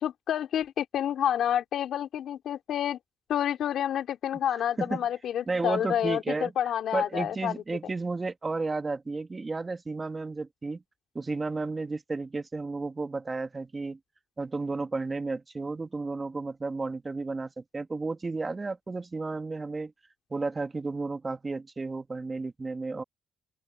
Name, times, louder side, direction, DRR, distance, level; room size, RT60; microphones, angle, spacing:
voice 1, 0.0-3.0 3.3-7.6, left 10 dB, 70° left, 2.9 m, -29 dB
voice 2, 4.5-5.0 5.5-6.5 6.9-10.8 11.1-14.0 14.4-19.9 20.3-23.0, right 3 dB, 25° right, 2.2 m, -33 dB
open air
cardioid pair, 90°, 0 cm